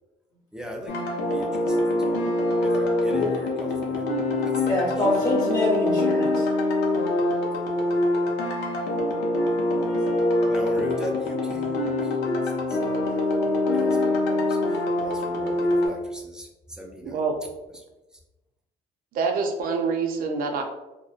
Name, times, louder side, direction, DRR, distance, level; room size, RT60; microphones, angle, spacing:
voice 1, 0.5-2.2 2.6-4.0 4.4-4.5 4.8-4.9 10.5-11.9 12.2-17.2 17.7-17.8, equal, 5° right, 1 dB, 0.4 m, -40 dB
sound 1, 0.9-15.9, left 2 dB, 85° left, 0.5 m, -24 dB
voice 2, 4.6-6.6, left 1 dB, 25° left, -5 dB, 1.2 m, -26 dB
voice 3, 17.0-17.4 19.1-20.6, right 4 dB, 60° right, 3 dB, 0.5 m, -26 dB
2.5 x 2.1 x 2.4 m, 1.0 s
cardioid pair, 110°, 17 cm